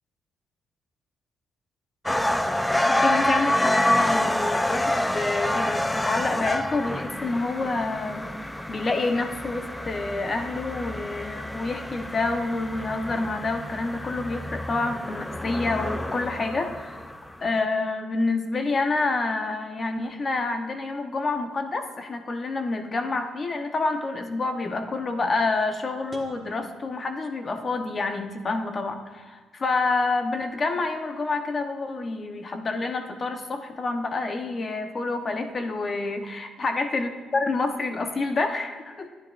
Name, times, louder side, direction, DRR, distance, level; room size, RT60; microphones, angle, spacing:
sound 1, 2.1-17.3, left 1 dB, 10° left, 0.4 m, -27 dB
voice 1, 3.0-17.0 17.4-39.1, left 3 dB, 40° left, 6 dB, 0.9 m, -28 dB
sound 2, 26.1-28.0, right 3 dB, 20° right, 1.5 m, -51 dB
12.5 x 9.9 x 2.5 m, 1.4 s
cardioid pair, 90°, 0 cm